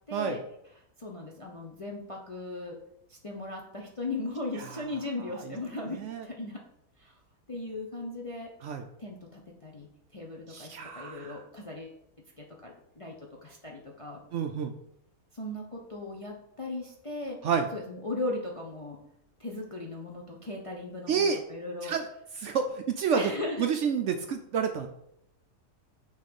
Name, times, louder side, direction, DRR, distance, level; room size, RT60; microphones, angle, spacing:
voice 1, 0.1-0.4 1.0-2.8 3.1-6.6 7.0-7.2 7.5-8.5 9.0-12.0 12.4-13.1 13.4-14.2 15.3-17.4 17.7-19.0 19.4-21.9 23.1-23.7, left 2 dB, 35° left, -1 dB, 0.5 m, -37 dB
voice 2, 5.9-6.2 8.6-8.8 10.5-11.4 14.3-14.7 17.4-17.7 21.1-21.4 21.8-22.1 22.4-23.3 23.6-24.9, right 6 dB, 65° right, 6 dB, 0.7 m, -29 dB
6.4 x 3.2 x 5.2 m, 0.77 s
omnidirectional pair, 1.6 m